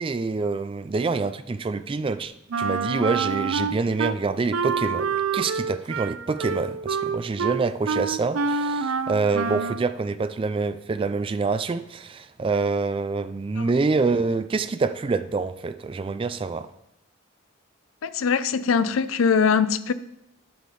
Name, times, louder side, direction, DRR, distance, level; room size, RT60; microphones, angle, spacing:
voice 1, 0.0-2.3 2.6-16.7, right 4 dB, 25° right, 0.3 m, -26 dB
Wind instrument woodwind instrument, 2.5-4.2 4.5-9.8, right 5 dB, 85° right, 0.5 m, -27 dB
voice 2, 18.0-19.9, left 6 dB, 85° left, 0.5 m, -22 dB
11.5 x 5.0 x 3.9 m
head